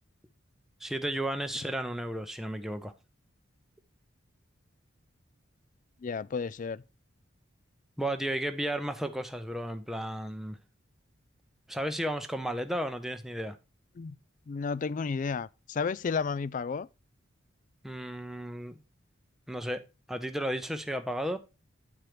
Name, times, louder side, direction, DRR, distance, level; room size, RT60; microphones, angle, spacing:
voice 1, 0.8-2.9 8.0-10.6 11.7-13.6 17.8-18.8 19.5-19.8 20.1-21.4, right 1 dB, ahead, 0.6 m, -33 dB
voice 2, 6.0-6.8 14.0-14.2 14.5-16.9, left 5 dB, 40° left, 0.3 m, -32 dB
9.1 x 4.6 x 4.9 m
head